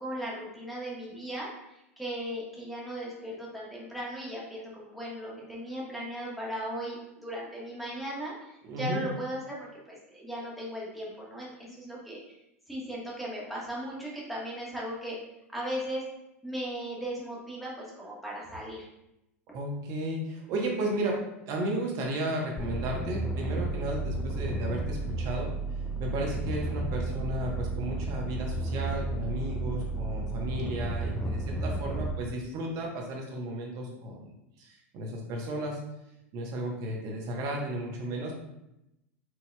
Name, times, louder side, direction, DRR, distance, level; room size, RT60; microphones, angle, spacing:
voice 1, 0.0-1.5 2.0-9.6 9.9-12.2 12.7-15.2 15.5-16.0 16.4-18.9, right 1 dB, ahead, -5 dB, 1.2 m, -37 dB
voice 2, 8.7-9.0 19.5-25.5 26.0-34.3 34.6-35.9 36.3-38.3, right 1 dB, 50° right, 0 dB, 1.0 m, -34 dB
sound 1, 22.6-32.1, right 2 dB, 15° left, 0.4 m, -32 dB
4.7 x 2.7 x 2.2 m, 0.88 s
hypercardioid pair, 95°, 8 cm